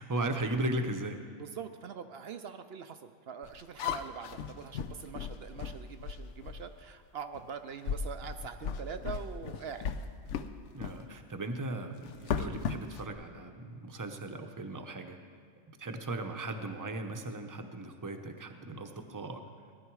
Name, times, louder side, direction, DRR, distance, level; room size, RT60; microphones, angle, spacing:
voice 1, 0.0-1.2 10.7-15.2 15.8-19.4, right 1 dB, 20° right, 5 dB, 0.7 m, -37 dB
voice 2, 1.3-9.9, right 7 dB, 60° right, 9 dB, 0.7 m, -43 dB
sound 1, 3.4-6.7 7.3-7.5 7.8-10.5 10.8-11.0 12.0-13.1, left 7 dB, 70° left, 0.9 m, -36 dB
17.5 x 11.5 x 4.7 m, 2.1 s
omnidirectional pair, 1.4 m